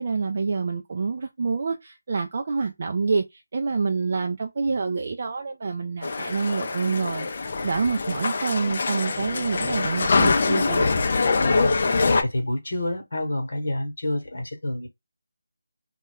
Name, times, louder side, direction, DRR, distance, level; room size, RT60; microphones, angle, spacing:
voice 1, 0.0-10.8, right 4 dB, 40° right, 0.3 m, -27 dB
sound 1, 6.0-12.2, left 4 dB, 40° left, 0.4 m, -24 dB
voice 2, 11.4-11.8 12.2-14.9, left 1 dB, 60° left, 0.9 m, -28 dB
2.2 x 2.1 x 3.4 m
figure-of-eight pair, 165°, 0 cm